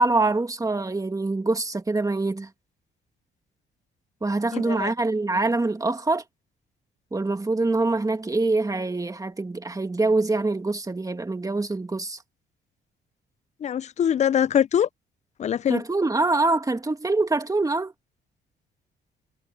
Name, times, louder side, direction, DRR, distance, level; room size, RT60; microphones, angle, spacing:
voice 1, 0.0-2.5 4.2-6.2 7.1-12.2 15.7-17.9, right 2 dB, 15° right, 2.1 m, -24 dB
voice 2, 4.5-4.9 13.6-14.9 15.4-15.8, left 9 dB, 35° left, 0.4 m, -23 dB
cardioid pair, 90°, 20 cm